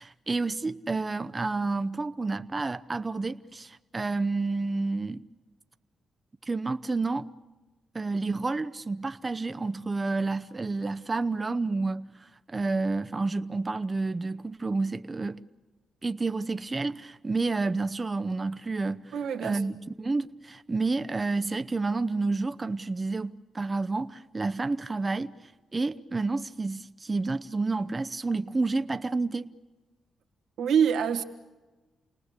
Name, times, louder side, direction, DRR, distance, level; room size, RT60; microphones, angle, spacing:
voice 1, 0.0-5.3 6.5-7.3 7.9-15.4 16.0-19.2 19.4-25.3 25.7-29.5, right 3 dB, 25° right, 0.8 m, -30 dB
voice 2, 19.1-19.6 30.6-31.2, right 7 dB, 90° right, 1.8 m, -25 dB
29.0 x 19.0 x 8.2 m
cardioid pair, 85°, 0 cm